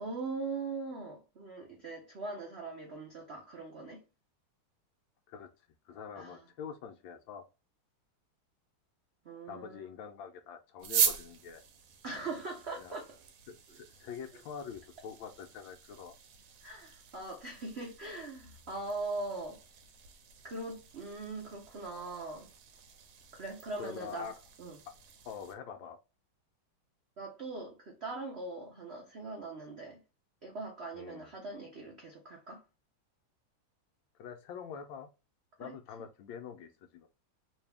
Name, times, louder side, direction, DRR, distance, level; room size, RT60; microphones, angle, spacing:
voice 1, 0.0-4.0 6.2-6.5 9.2-9.9 12.0-13.2 13.7-13.8 16.6-19.6 20.4-22.5 23.3-24.3 24.6-24.8 27.2-30.0 30.4-32.6 35.6-35.7, right 3 dB, 70° right, 0.6 m, -41 dB
voice 2, 5.9-7.4 9.5-11.6 12.8-13.0 13.5-16.1 23.8-24.3 25.2-26.0 30.9-31.3 34.2-35.1 35.6-37.1, left 7 dB, 75° left, 1.2 m, -45 dB
sound 1, 10.8-25.5, right 7 dB, 85° right, 1.6 m, -40 dB
3.6 x 2.7 x 3.3 m
omnidirectional pair, 2.3 m